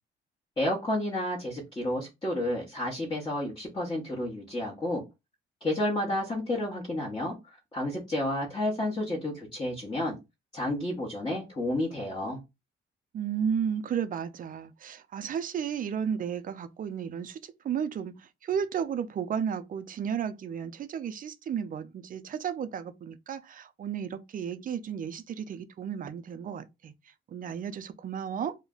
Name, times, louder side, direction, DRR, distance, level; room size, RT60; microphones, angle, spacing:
voice 1, 0.6-5.0 5.6-7.3 7.7-10.2 10.5-12.4, left 1 dB, 20° left, 1.0 m, -31 dB
voice 2, 13.1-17.4 17.6-18.1 18.4-26.9 27.3-28.6, right 8 dB, 45° right, 0.4 m, -33 dB
2.4 x 2.1 x 3.6 m
cardioid pair, 90°, 20 cm